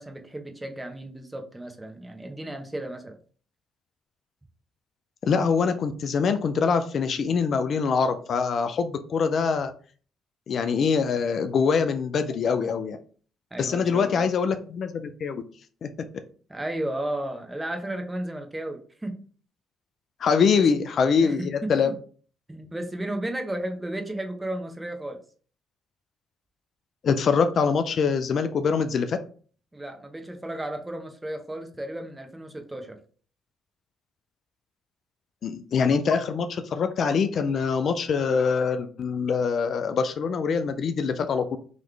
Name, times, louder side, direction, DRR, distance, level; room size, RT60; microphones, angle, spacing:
voice 1, 0.0-3.2 13.5-14.3 16.5-19.2 20.6-20.7 21.1-22.0 22.5-25.2 29.7-33.0, right 1 dB, 15° right, 0.9 m, -34 dB
voice 2, 5.2-9.7 10.5-13.0 13.6-15.4 15.8-15.9 20.2-21.9 27.0-29.2 35.4-41.6, left 5 dB, 55° left, 0.4 m, -24 dB
3.9 x 3.1 x 3.3 m
supercardioid pair, 60°, 0 cm